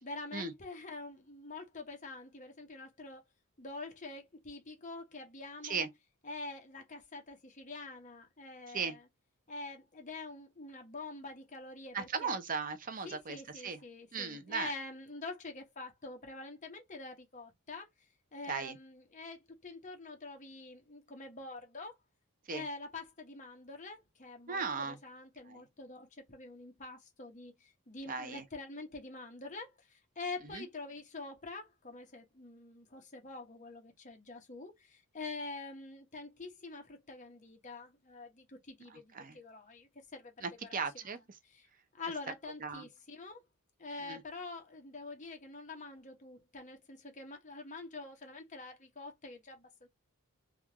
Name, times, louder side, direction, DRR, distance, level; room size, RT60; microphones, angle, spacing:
voice 1, 0.0-3.2 3.6-5.9 6.2-9.0 9.5-12.4 13.0-17.9 18.3-22.0 22.5-40.8 41.5-41.7 41.9-43.4 43.8-49.9, left 3 dB, 35° left, 1.0 m, -46 dB
voice 2, 11.9-13.8 14.1-14.7 18.5-18.8 22.5-22.6 24.5-25.0 25.5-25.6 28.1-28.4 30.5-30.6 38.9-39.4 40.4-41.2 42.6-42.9 44.0-44.2, right 5 dB, 40° right, 0.6 m, -37 dB
3.5 x 2.4 x 3.0 m
head